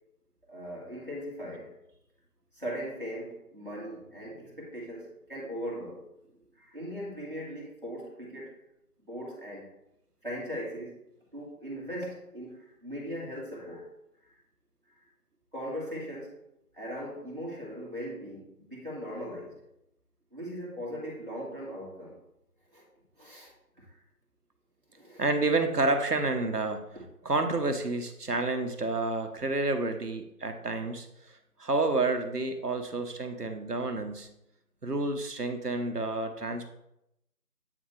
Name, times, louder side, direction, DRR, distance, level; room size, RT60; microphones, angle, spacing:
voice 1, 0.5-1.7 2.5-6.1 6.5-8.6 9.1-9.7 10.2-11.0 11.3-13.9 14.9-15.0 15.5-16.4 16.7-19.6 20.3-22.2 22.7-22.8 23.2-23.5 23.8-24.0 24.9-25.2 27.0-27.1, equal, 35° right, -5 dB, 2.0 m, -39 dB
voice 2, 25.2-26.9 27.2-31.1 31.6-34.3 34.8-36.7, right 2 dB, 75° right, 6 dB, 1.1 m, -29 dB
8.6 x 3.7 x 3.3 m, 0.83 s
figure-of-eight pair, 180°, 46 cm